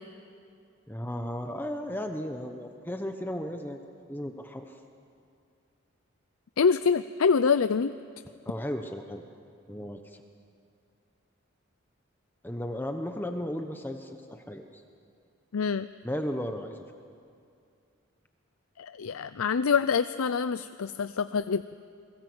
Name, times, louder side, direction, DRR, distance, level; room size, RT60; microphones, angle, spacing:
voice 1, 0.9-3.8 4.1-4.8 8.5-9.2 9.7-10.2 12.4-14.8 16.0-16.8, equal, 10° left, 5 dB, 1.0 m, -35 dB
voice 2, 6.6-7.9 15.5-15.9 18.8-21.8, left 5 dB, 85° left, 13 dB, 0.5 m, -25 dB
28.5 x 22.0 x 8.0 m, 2.4 s
head